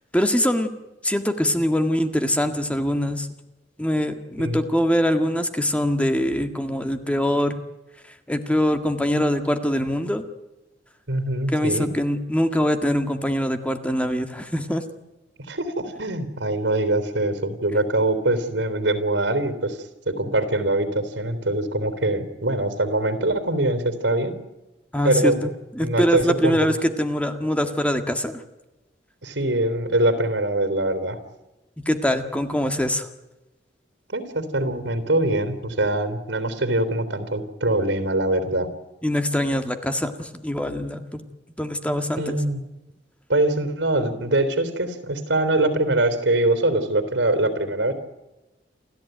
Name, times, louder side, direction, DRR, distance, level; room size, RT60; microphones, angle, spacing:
voice 1, 0.1-0.7 1.0-3.3 3.8-7.6 8.3-10.2 11.5-14.8 24.9-25.3 25.8-28.4 31.8-33.1 39.0-41.2 41.6-42.3, equal, 5° left, 7 dB, 1.8 m, -23 dB
voice 2, 11.1-11.9 15.5-19.8 20.1-24.4 25.0-25.5 25.8-26.7 29.2-31.2 34.1-38.7 42.2-42.6 43.3-47.9, right 1 dB, 90° right, 11 dB, 3.6 m, -23 dB
29.0 x 14.5 x 9.3 m, 1.0 s
head